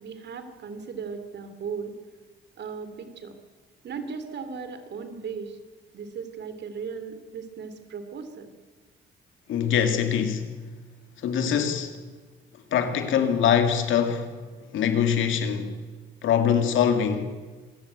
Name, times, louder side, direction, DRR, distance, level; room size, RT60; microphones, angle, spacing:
voice 1, 0.0-1.9 2.6-3.3 3.8-5.6 5.9-8.5, right 5 dB, 60° right, 3.1 m, -37 dB
voice 2, 9.5-10.5 11.2-11.9 12.7-14.3 14.7-15.8 16.2-17.4, left 8 dB, 80° left, 2.5 m, -23 dB
26.0 x 16.5 x 8.2 m
cardioid pair, 90°, 20 cm